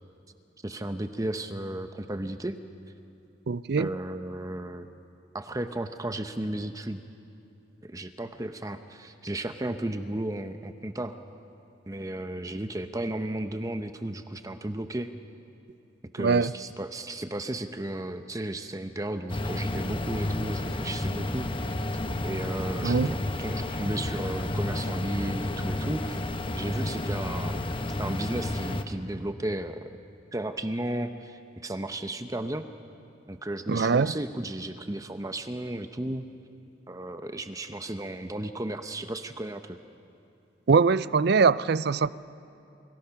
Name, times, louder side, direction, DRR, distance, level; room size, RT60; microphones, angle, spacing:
voice 1, 0.6-2.6 3.8-4.9 5.3-7.0 7.8-11.2 11.9-15.1 16.1-21.5 22.2-26.2 26.5-27.6 28.0-29.9 30.3-32.7 33.3-36.3 36.9-39.8, right 1 dB, 20° right, 0.8 m, -34 dB
voice 2, 3.5-3.9 16.2-16.5 22.8-23.1 33.7-34.1 40.7-42.1, right 5 dB, 60° right, 0.5 m, -22 dB
sound 1, 19.3-28.8, left 1 dB, 25° left, 1.0 m, -31 dB
29.0 x 25.0 x 5.9 m
head